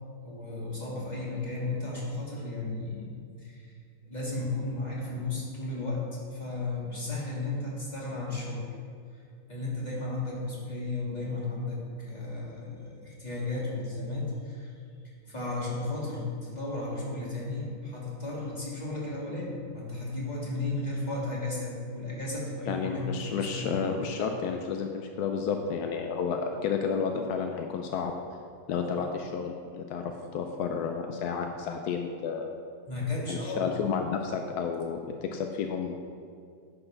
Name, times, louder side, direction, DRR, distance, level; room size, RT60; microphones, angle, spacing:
voice 1, 0.2-3.7 4.0-8.7 9.1-14.7 15.3-23.8 29.0-29.1 32.9-33.7, left 2 dB, 20° left, -5 dB, 2.2 m, -34 dB
voice 2, 22.7-28.1 28.7-32.5 33.3-36.0, left 6 dB, 75° left, 4 dB, 0.9 m, -31 dB
9.8 x 5.6 x 5.6 m, 2.3 s
omnidirectional pair, 2.2 m